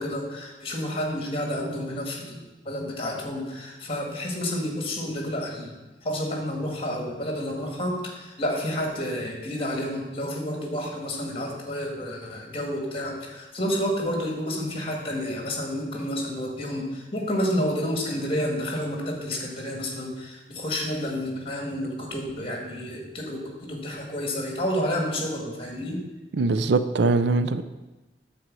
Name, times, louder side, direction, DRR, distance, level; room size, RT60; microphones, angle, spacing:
voice 1, 0.0-5.7 6.0-26.0, equal, 30° left, 1 dB, 1.8 m, -30 dB
voice 2, 26.3-27.6, right 3 dB, 75° right, 12 dB, 0.5 m, -22 dB
9.2 x 4.2 x 7.4 m, 1.1 s
head